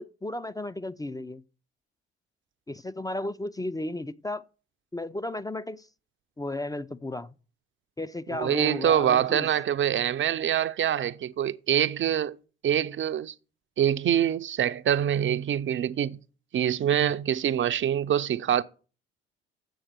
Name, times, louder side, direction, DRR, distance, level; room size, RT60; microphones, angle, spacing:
voice 1, 0.0-1.4 2.7-4.4 4.9-5.9 6.4-7.3 8.0-9.5, left 1 dB, 10° left, 0.5 m, -34 dB
voice 2, 8.3-12.4 12.6-13.3 13.8-16.2 16.5-18.6, right 10 dB, 40° right, 0.6 m, -25 dB
7.9 x 7.2 x 6.7 m
hypercardioid pair, 55°, 32 cm